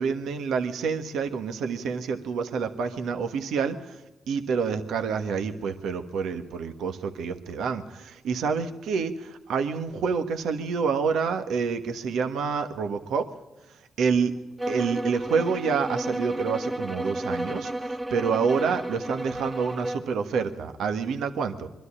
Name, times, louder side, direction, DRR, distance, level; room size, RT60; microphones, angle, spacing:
voice 1, 0.0-4.0 4.3-13.3 14.0-14.3 14.7-21.7, right 5 dB, 80° right, 7 dB, 1.4 m, -28 dB
sound 1, 14.6-20.1, right 1 dB, 20° right, 1.7 m, -32 dB
23.0 x 13.0 x 9.9 m, 1.0 s
supercardioid pair, 60°, 0 cm